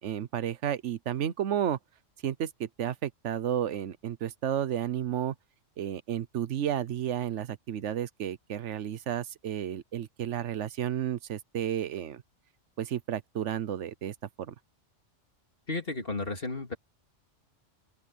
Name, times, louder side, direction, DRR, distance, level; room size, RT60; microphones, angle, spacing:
voice 1, 0.0-1.8 2.2-5.3 5.8-12.2 12.8-14.5, right 10 dB, 70° right, 1.1 m, -32 dB
voice 2, 15.7-16.8, left 3 dB, 50° left, 3.3 m, -33 dB
open air
omnidirectional pair, 1.3 m